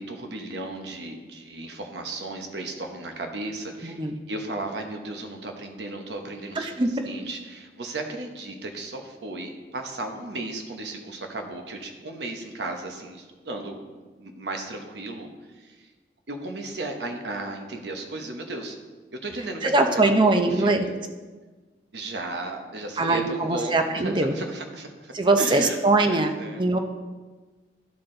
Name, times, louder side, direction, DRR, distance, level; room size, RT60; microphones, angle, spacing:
voice 1, 0.0-15.9 16.3-18.8 19.2-20.9 21.9-25.8 26.0-26.6, right 2 dB, 75° right, 4 dB, 1.0 m, -35 dB
voice 2, 3.8-4.1 6.6-7.1 19.6-20.9 23.0-24.3 25.1-26.8, right 2 dB, 25° right, 5 dB, 0.6 m, -22 dB
12.0 x 4.3 x 3.8 m, 1.3 s
head